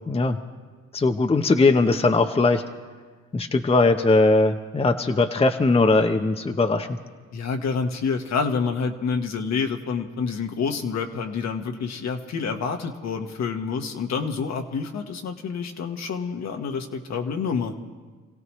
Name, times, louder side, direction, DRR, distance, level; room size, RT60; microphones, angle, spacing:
voice 1, 0.1-0.4 0.9-2.6 3.3-7.0, left 3 dB, 20° left, 6 dB, 0.8 m, -20 dB
voice 2, 7.3-17.8, left 5 dB, 60° left, 5 dB, 1.5 m, -28 dB
28.0 x 16.5 x 3.2 m, 1.4 s
cardioid pair, 90°, 30 cm